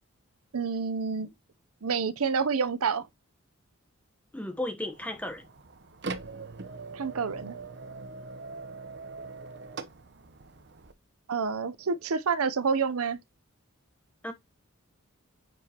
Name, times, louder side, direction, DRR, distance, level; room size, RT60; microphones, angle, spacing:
voice 1, 0.5-1.3 1.8-3.1 6.9-7.5 11.3-13.2, right 5 dB, 90° right, 0.7 m, -28 dB
voice 2, 4.3-5.4 14.2-14.3, left 1 dB, 5° left, 1.0 m, -34 dB
sound 1, 4.9-10.9, right 3 dB, 50° right, 0.8 m, -42 dB
9.1 x 4.8 x 2.9 m
head